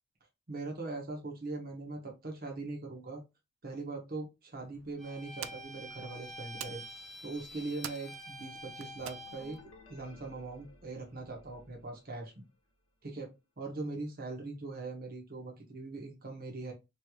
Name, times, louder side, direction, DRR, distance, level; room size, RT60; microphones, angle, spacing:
voice 1, 0.5-3.2 3.6-6.8 7.2-9.6 9.9-12.4 13.0-16.7, right 3 dB, 45° right, 0 dB, 1.0 m, -41 dB
sound 1, 4.5-9.8, right 10 dB, 75° right, 0.3 m, -49 dB
Bowed string instrument, 5.0-9.6, equal, ahead, 0.5 m, -47 dB
sound 2, 9.0-12.7, left 2 dB, 75° left, 0.8 m, -58 dB
3.1 x 3.0 x 2.3 m, 0.24 s
head